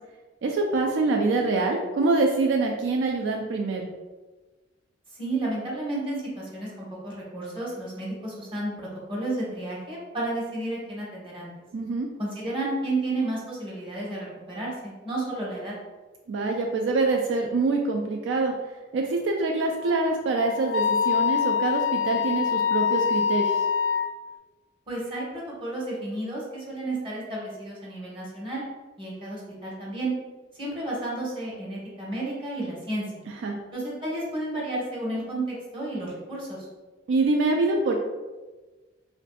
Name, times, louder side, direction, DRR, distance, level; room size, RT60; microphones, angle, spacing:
voice 1, 0.4-3.9 11.7-12.1 16.3-18.5 18.9-23.6 33.4-33.6 37.1-37.9, right 3 dB, 75° right, 2 dB, 0.3 m, -25 dB
voice 2, 5.2-11.5 12.2-15.7 24.9-28.6 29.0-30.1 30.6-33.0 33.7-36.6, right 2 dB, 30° right, -5 dB, 0.9 m, -32 dB
Wind instrument woodwind instrument, 19.8-24.1, left 7 dB, 70° left, 0.4 m, -25 dB
3.3 x 2.5 x 2.2 m, 1.2 s
head